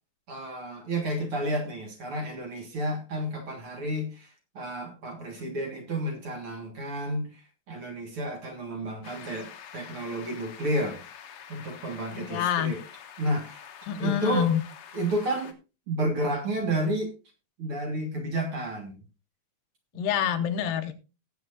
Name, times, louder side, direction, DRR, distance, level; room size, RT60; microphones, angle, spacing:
voice 1, 0.3-12.8 13.2-14.5 14.9-15.5 15.9-17.1 17.6-19.0 19.9-20.0 20.6-20.7, right 1 dB, 45° right, 3 dB, 2.2 m, -31 dB
sound 1, 9.0-15.5, left 8 dB, 65° left, 1.8 m, -47 dB
voice 2, 12.1-12.7 13.9-14.6 20.0-20.9, left 9 dB, 85° left, 8 dB, 2.7 m, -27 dB
18.0 x 8.1 x 2.6 m, 0.30 s
omnidirectional pair, 3.8 m